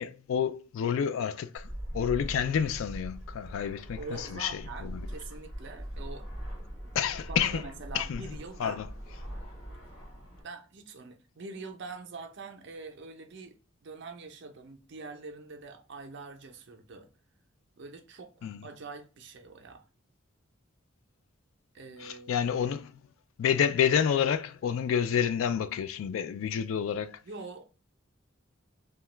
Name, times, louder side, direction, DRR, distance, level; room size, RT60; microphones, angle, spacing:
voice 1, 0.0-5.1 7.0-7.6 7.9-8.2 8.6-8.9 18.4-18.6 22.0-23.0 23.4-27.2, left 8 dB, 70° left, 0.3 m, -29 dB
Fixed-wing aircraft airplane, 1.6-10.4, equal, 40° left, 1.6 m, -41 dB
voice 2, 4.0-6.3 7.3-8.8 10.4-17.1 17.8-19.8 21.7-22.4 27.2-27.6, right 3 dB, 55° right, 0.5 m, -44 dB
2.8 x 2.2 x 3.1 m
head